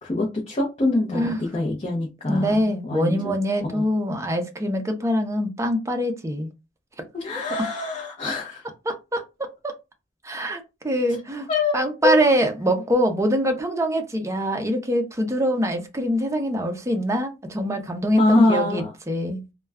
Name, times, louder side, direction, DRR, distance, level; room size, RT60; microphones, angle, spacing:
voice 1, 0.0-3.8 7.1-8.6 11.5-12.2 18.2-18.9, left 2 dB, 30° left, -2 dB, 0.6 m, -24 dB
voice 2, 2.3-6.5 8.9-9.7 10.2-19.4, equal, 15° right, 5 dB, 0.5 m, -24 dB
2.2 x 2.2 x 3.4 m, 0.26 s
head